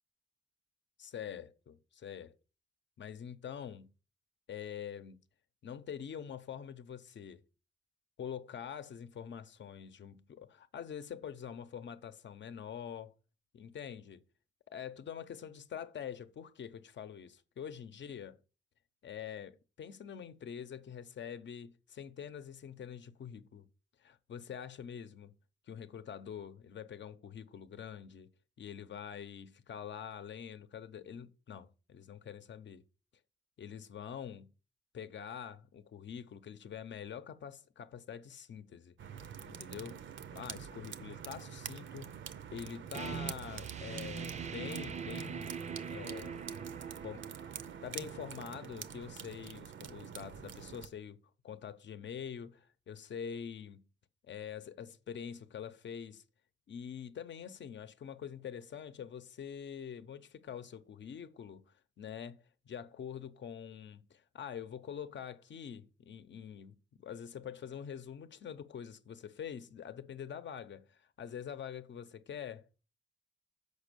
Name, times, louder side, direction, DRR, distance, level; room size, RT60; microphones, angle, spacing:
voice 1, 1.0-2.3 3.0-3.9 4.5-5.2 5.6-7.4 8.2-13.2 13.5-14.2 14.7-18.4 19.0-23.7 24.0-25.4 25.7-28.3 28.6-32.8 33.6-34.5 34.9-38.9 39.5-40.0 40.3-42.1 42.5-45.5 45.9-46.4 47.0-47.5 47.8-53.8 54.2-56.2 56.7-72.6, left 8 dB, 70° left, 0.7 m, -45 dB
sound 1, 39.0-50.9, right 8 dB, 75° right, 0.6 m, -46 dB
sound 2, 42.9-48.4, right 6 dB, 35° right, 0.4 m, -43 dB
6.7 x 5.3 x 6.7 m
wide cardioid pair, 155°, 20 cm